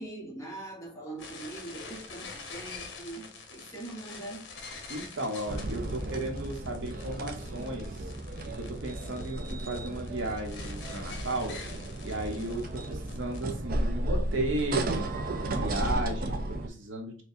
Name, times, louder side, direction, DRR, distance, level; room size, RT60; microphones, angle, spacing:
voice 1, 0.0-4.5, right 2 dB, 15° left, 1.3 m, -42 dB
sound 1, 1.2-13.4, left 4 dB, 60° left, 0.9 m, -46 dB
voice 2, 4.9-8.1 8.5-11.5 12.0-15.0 15.4-17.2, right 2 dB, 80° right, 1.0 m, -34 dB
Printer Startup, 5.5-16.7, right 1 dB, 45° right, 0.5 m, -34 dB
4.4 x 2.2 x 2.6 m
head